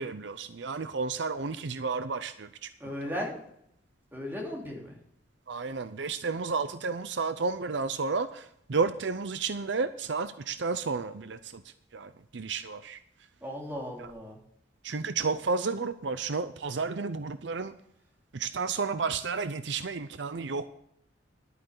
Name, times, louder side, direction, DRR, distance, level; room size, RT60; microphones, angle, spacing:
voice 1, 0.0-2.9 5.5-13.0 14.0-14.1 14.8-17.8 18.3-20.7, right 4 dB, 70° right, 12 dB, 0.6 m, -32 dB
voice 2, 2.8-3.4 4.1-5.0 13.4-14.4, equal, 10° right, -2 dB, 3.3 m, -36 dB
11.0 x 9.3 x 6.7 m, 0.72 s
head